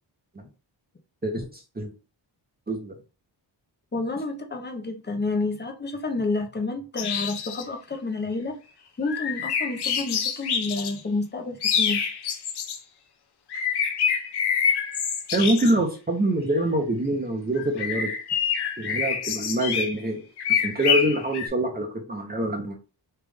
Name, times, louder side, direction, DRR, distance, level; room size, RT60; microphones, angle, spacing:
voice 1, 3.9-8.5 9.0-12.0, left 3 dB, 25° left, 0.7 m, -29 dB
sound 1, 7.0-7.6 9.0-11.0 11.6-12.8 13.5-15.7 17.6-19.9 20.4-21.5, left 7 dB, 60° left, 0.7 m, -26 dB
voice 2, 15.3-18.1 18.8-20.2 20.6-22.7, right 1 dB, 20° right, 0.8 m, -25 dB
3.3 x 2.5 x 3.4 m
cardioid pair, 85°, 44 cm